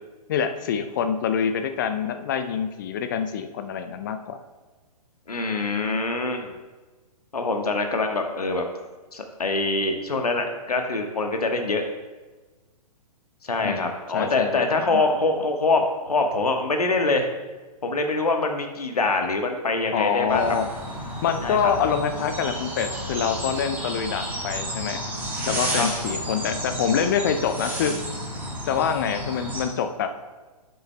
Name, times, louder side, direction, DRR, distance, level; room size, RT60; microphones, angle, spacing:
voice 1, 0.3-4.4 13.6-14.6 14.9-15.1 19.9-20.6 21.2-25.0 25.5-28.0 28.7-30.1, left 7 dB, 30° left, 8 dB, 0.5 m, -26 dB
voice 2, 5.3-6.5 7.3-8.6 9.1-11.8 13.4-17.3 17.8-20.5 21.4-21.7 25.7-25.9, left 3 dB, 70° left, 4 dB, 1.2 m, -24 dB
sound 1, 20.3-29.7, right 1 dB, 10° right, 1.7 m, -32 dB
11.0 x 7.8 x 2.2 m, 1.3 s
figure-of-eight pair, 120°, 20 cm